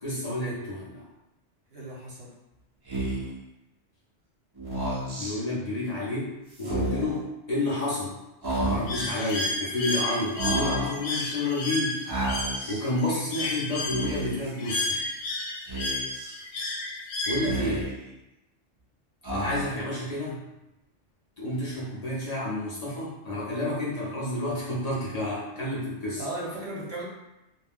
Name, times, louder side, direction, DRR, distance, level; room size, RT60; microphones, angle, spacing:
voice 1, 0.0-1.0 5.2-8.2 8.6-12.0 12.7-15.0 17.3-17.9 19.3-20.4 21.4-26.2, left 1 dB, 40° left, -7 dB, 0.7 m, -30 dB
voice 2, 1.7-2.3 26.2-27.0, right 1 dB, 65° right, -6 dB, 1.0 m, -36 dB
Speech, 2.9-3.4 4.6-5.3 6.5-7.2 8.4-9.1 10.3-11.0 12.1-12.8 13.8-14.5 15.7-16.3 17.3-18.1 19.2-19.9, right 1 dB, 30° right, 0.5 m, -31 dB
Bird, 8.9-17.8, left 2 dB, 85° left, 1.0 m, -32 dB
2.5 x 2.1 x 3.5 m, 0.94 s
omnidirectional pair, 1.3 m